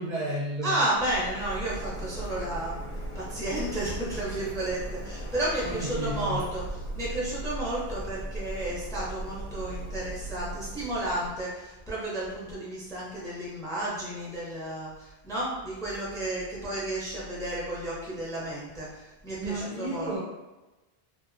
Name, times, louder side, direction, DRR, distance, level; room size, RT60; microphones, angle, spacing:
voice 1, 0.0-0.9 5.6-6.4 19.4-20.2, right 1 dB, 55° right, -6 dB, 0.6 m, -32 dB
voice 2, 0.6-2.8 3.1-6.6 6.9-20.1, right 1 dB, 5° left, -6 dB, 0.5 m, -32 dB
Printer, 0.9-11.3, right 1 dB, 55° left, 0.7 m, -37 dB
2.8 x 2.1 x 2.5 m, 1.1 s
omnidirectional pair, 1.1 m